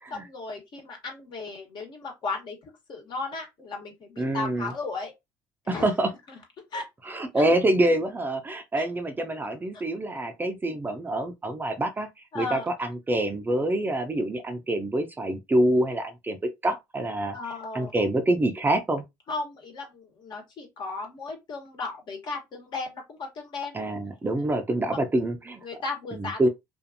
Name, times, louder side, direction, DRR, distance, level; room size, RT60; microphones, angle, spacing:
voice 1, 0.1-2.6 2.9-5.1 5.6-5.9 6.3-6.4 6.7-6.9 7.4-7.5 8.8-8.9 12.3-12.6 17.3-17.9 19.3-23.9 25.6-26.5, left 3 dB, 55° left, 1.2 m, -35 dB
voice 2, 4.2-4.7 5.7-6.1 7.1-12.1 12.3-16.4 16.6-17.4 17.7-19.0 23.7-25.6 26.1-26.5, right 1 dB, 20° right, 0.5 m, -26 dB
2.5 x 2.4 x 2.6 m
supercardioid pair, 75°, 9 cm